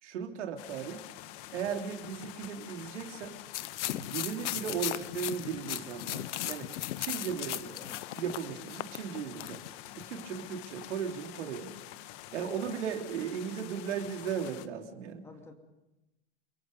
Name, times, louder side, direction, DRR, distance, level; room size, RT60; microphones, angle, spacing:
voice 1, 0.0-1.1 1.5-3.3 3.9-6.7 7.0-7.8 8.1-9.6 10.1-11.7 12.3-15.2, right 7 dB, 85° right, 3 dB, 3.3 m, -36 dB
sound 1, 0.6-14.7, left 14 dB, 45° left, 1.3 m, -47 dB
sound 2, 3.5-9.7, left 14 dB, 80° left, 0.9 m, -37 dB
voice 2, 7.2-8.1 15.2-15.5, left 2 dB, 5° left, 3 dB, 2.6 m, -52 dB
30.0 x 22.5 x 5.4 m, 0.98 s
supercardioid pair, 145°, 35 cm